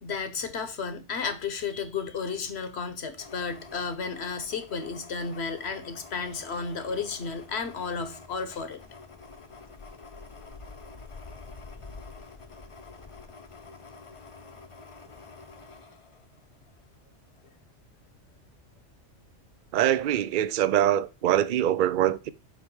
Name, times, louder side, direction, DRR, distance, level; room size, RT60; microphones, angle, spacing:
voice 1, 0.0-8.8, left 5 dB, 65° left, 1.2 m, -33 dB
sound 1, 3.2-16.9 17.3-17.4, left 4 dB, 30° left, 0.7 m, -47 dB
voice 2, 19.7-22.3, right 11 dB, 55° right, 0.6 m, -24 dB
7.4 x 3.3 x 4.7 m
omnidirectional pair, 1.2 m